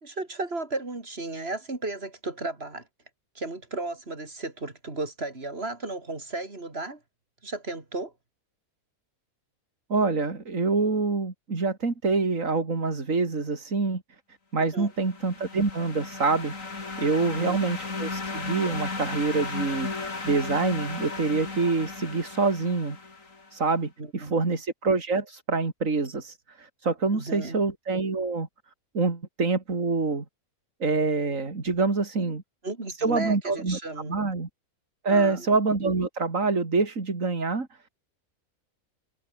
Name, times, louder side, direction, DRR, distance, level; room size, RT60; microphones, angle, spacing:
voice 1, 0.0-2.9 3.4-7.0 7.4-8.1 14.6-14.9 17.2-17.6 24.0-24.6 27.1-27.7 32.2-32.3 32.6-34.3 35.1-35.5, right 2 dB, 45° right, 3.7 m, -35 dB
voice 2, 9.9-14.0 14.5-16.5 17.0-23.0 23.5-28.5 28.9-30.3 30.8-32.4 33.0-33.8 34.0-34.5 35.0-37.7, right 3 dB, 60° right, 3.4 m, -26 dB
sound 1, 14.9-23.5, left 3 dB, 60° left, 3.5 m, -35 dB
omnidirectional pair, 1.5 m